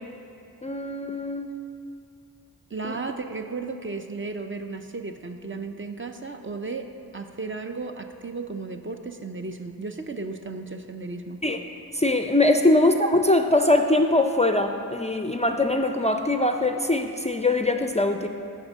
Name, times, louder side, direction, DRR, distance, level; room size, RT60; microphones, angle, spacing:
voice 1, 0.6-1.6 2.8-3.0 11.4-11.6 11.9-18.3, left 2 dB, 20° left, 5 dB, 0.4 m, -22 dB
voice 2, 2.7-11.4, right 3 dB, 35° right, 6 dB, 0.5 m, -34 dB
10.5 x 3.6 x 7.2 m, 2.5 s
wide cardioid pair, 70°, 36 cm